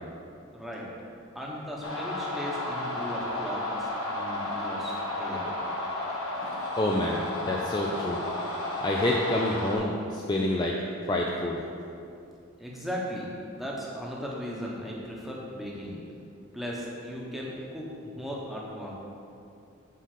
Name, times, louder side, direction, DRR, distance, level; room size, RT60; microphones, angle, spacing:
voice 1, 0.5-0.9 1.3-5.4 12.6-16.0 16.5-18.9, equal, ahead, -4 dB, 1.0 m, -37 dB
sound 1, 1.8-9.8, left 1 dB, 80° left, 1.5 m, -33 dB
voice 2, 6.8-8.2 8.8-10.8 11.1-11.6, left 1 dB, 20° left, -1 dB, 0.4 m, -27 dB
7.5 x 4.0 x 6.5 m, 2.6 s
head